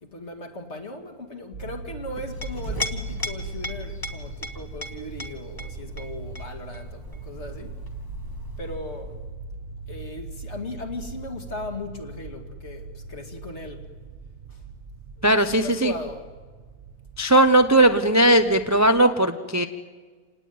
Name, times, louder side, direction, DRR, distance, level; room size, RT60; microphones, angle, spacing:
voice 1, 0.0-7.7 8.6-9.2 9.9-13.9 15.3-16.3, left 2 dB, 50° left, 2.6 m, -37 dB
sound 1, 1.5-19.0, right 3 dB, 40° right, 0.9 m, -40 dB
Chink clink, 2.2-9.3, left 1 dB, 15° left, 1.5 m, -37 dB
voice 2, 15.2-15.9 17.2-19.7, right 1 dB, 15° right, 0.7 m, -18 dB
28.0 x 19.0 x 9.4 m
omnidirectional pair, 1.6 m